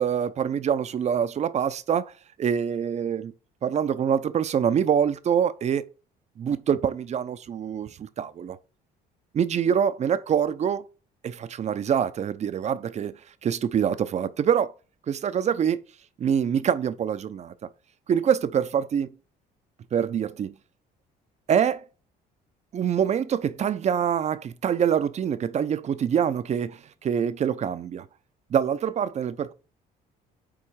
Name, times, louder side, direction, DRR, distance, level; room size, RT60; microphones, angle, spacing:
voice 1, 0.0-2.1 2.4-3.3 3.6-5.8 6.4-8.6 9.3-10.8 11.2-13.1 13.4-14.7 15.1-15.8 16.2-17.5 18.1-19.1 19.9-20.5 21.5-21.8 22.7-28.1 28.5-29.5, right 8 dB, 40° right, 0.7 m, -25 dB
8.7 x 3.2 x 4.8 m
cardioid pair, 110°, 17 cm